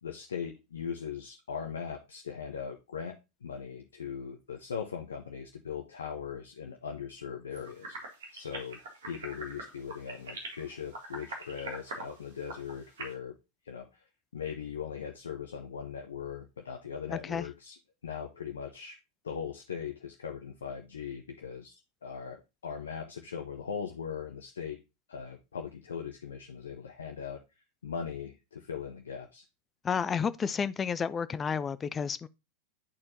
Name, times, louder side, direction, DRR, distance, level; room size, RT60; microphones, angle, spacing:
voice 1, 0.0-3.2 3.4-8.0 8.3-13.4 13.6-14.0 14.3-17.8 18.0-19.0 19.2-24.8 25.1-27.4 27.8-29.4, left 7 dB, 65° left, 0.7 m, -39 dB
sound 1, 7.5-13.1, right 2 dB, 65° right, 1.7 m, -43 dB
voice 2, 17.1-17.5 29.8-32.3, left 6 dB, 20° left, 0.4 m, -31 dB
10.0 x 4.3 x 2.7 m
figure-of-eight pair, 90°, 0 cm